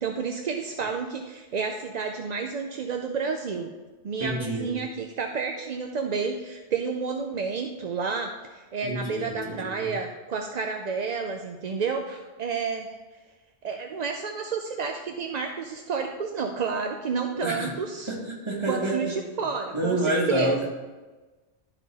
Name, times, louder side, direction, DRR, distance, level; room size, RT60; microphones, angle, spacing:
voice 1, 0.0-3.7 4.0-12.9 13.6-18.1 18.7-20.7, right 5 dB, 50° right, 4 dB, 0.5 m, -30 dB
voice 2, 4.2-4.8 8.8-9.9 17.3-17.7 18.1-19.2 19.7-20.7, right 1 dB, 25° right, -2 dB, 1.5 m, -28 dB
12.0 x 4.2 x 4.1 m, 1.2 s
omnidirectional pair, 1.2 m